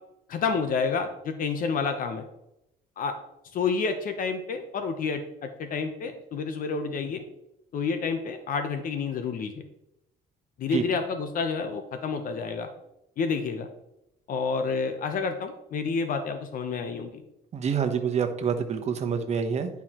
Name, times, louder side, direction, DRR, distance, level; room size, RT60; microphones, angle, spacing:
voice 1, 0.3-2.3 3.0-3.1 3.5-7.2 7.7-9.6 10.6-12.7 13.2-13.7 14.3-17.2, left 5 dB, 55° left, 7 dB, 0.8 m, -29 dB
voice 2, 17.5-19.7, right 6 dB, 40° right, 6 dB, 1.0 m, -27 dB
10.5 x 4.7 x 3.0 m, 0.82 s
cardioid pair, 110°, 17 cm